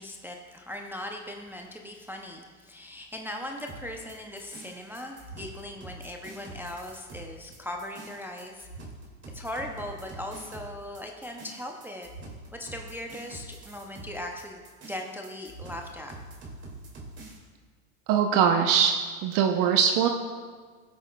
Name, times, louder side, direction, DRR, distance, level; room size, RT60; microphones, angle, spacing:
voice 1, 0.0-8.7 9.3-12.1 12.5-16.1, left 1 dB, 5° right, 1 dB, 0.4 m, -39 dB
sound 1, 3.7-17.4, right 2 dB, 25° right, 2.2 m, -45 dB
voice 2, 18.1-18.9 19.2-20.1, right 8 dB, 50° right, 5 dB, 0.7 m, -21 dB
15.5 x 7.9 x 2.2 m, 1.5 s
supercardioid pair, 115°, 42 cm